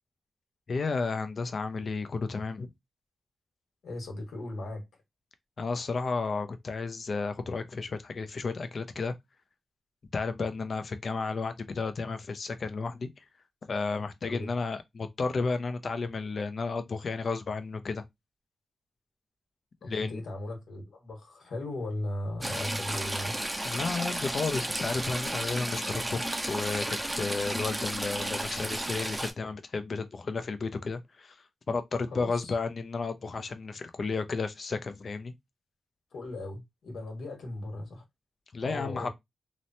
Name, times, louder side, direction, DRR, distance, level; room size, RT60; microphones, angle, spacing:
voice 1, 0.7-2.7 5.6-9.2 10.1-13.2 13.7-18.0 19.8-20.2 23.6-31.4 31.7-35.3 38.5-39.1, left 4 dB, 50° left, 0.5 m, -32 dB
voice 2, 3.8-4.9 14.2-14.5 19.8-23.3 32.1-32.5 36.1-38.0 38.6-39.1, left 1 dB, 80° left, 1.3 m, -37 dB
Stream / Trickle dribble, 22.4-29.3, right 1 dB, 15° right, 0.5 m, -33 dB
3.0 x 2.1 x 2.6 m
wide cardioid pair, 100°, 0 cm